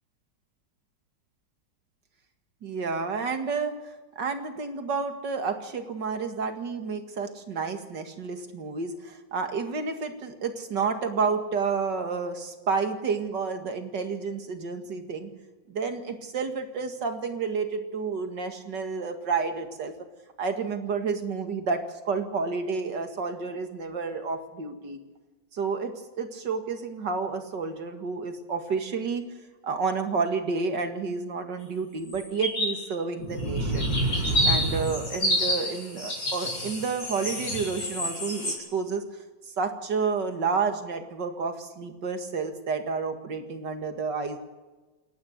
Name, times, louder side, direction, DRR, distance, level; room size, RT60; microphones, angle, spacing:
voice 1, 2.6-3.8 4.2-15.3 15.7-19.9 20.4-25.0 25.5-29.2 29.6-33.9 34.5-39.0 39.6-44.4, right 5 dB, 70° right, 6 dB, 2.6 m, -30 dB
sound 1, 32.1-32.8 33.2-38.6, equal, 65° left, 6.0 m, -28 dB
28.5 x 11.0 x 8.2 m, 1.2 s
omnidirectional pair, 2.0 m